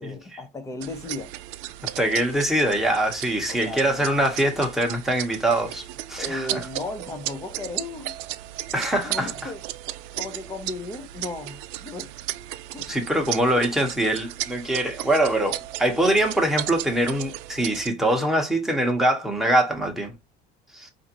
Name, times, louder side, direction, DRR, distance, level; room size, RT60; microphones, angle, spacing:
voice 1, 0.0-1.3 3.3-4.4 6.2-8.1 9.0-9.6 10.2-12.1 12.7-12.9, left 2 dB, 15° left, 0.6 m, -36 dB
sound 1, 0.8-17.9, right 15 dB, 85° right, 0.4 m, -35 dB
voice 2, 2.0-5.8 6.1-6.6 8.7-9.5 12.9-20.1 20.7-20.9, right 1 dB, ahead, 0.9 m, -23 dB
4.9 x 2.6 x 2.8 m
cardioid pair, 155°, 18 cm